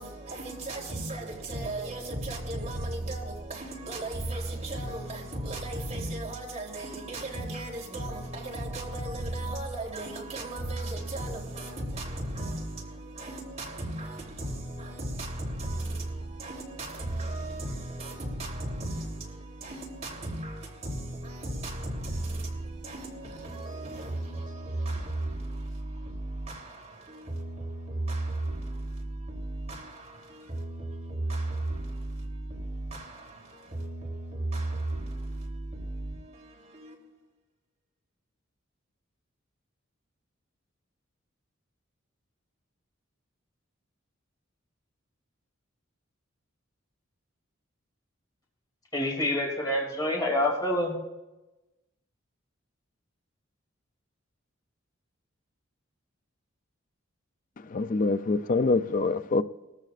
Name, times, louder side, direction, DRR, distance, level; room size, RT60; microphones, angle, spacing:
voice 1, 0.0-37.2, right 1 dB, 35° right, 3.3 m, -35 dB
voice 2, 48.9-50.9, left 1 dB, 20° left, 2.7 m, -27 dB
voice 3, 57.7-59.4, left 3 dB, 40° left, 0.4 m, -25 dB
20.5 x 14.0 x 2.5 m
head